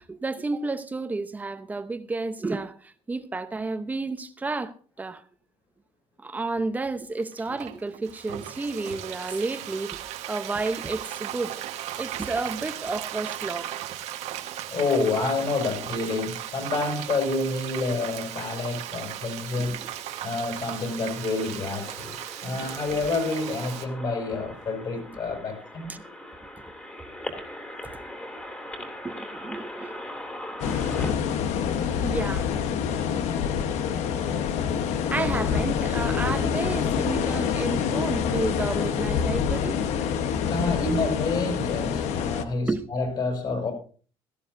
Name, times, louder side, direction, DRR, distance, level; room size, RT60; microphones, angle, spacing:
voice 1, 0.0-5.2 6.2-11.6 12.0-13.8 19.6-19.9 22.6-22.7 25.9-26.0 29.0-29.9 30.7-31.2 31.9-32.5 34.9-39.8 42.7-42.8, right 3 dB, 15° right, 0.8 m, -31 dB
Frying (food), 7.2-23.9, right 12 dB, 85° right, 1.4 m, -37 dB
voice 2, 14.7-19.8 20.2-22.2 22.4-25.9 35.2-35.3 40.5-43.7, left 3 dB, 45° left, 5.9 m, -28 dB
sound 1, 19.4-31.1, left 1 dB, 10° left, 2.5 m, -41 dB
sound 2, 30.6-42.4, left 7 dB, 90° left, 1.1 m, -26 dB
17.0 x 14.5 x 2.7 m
cardioid pair, 160°, 11 cm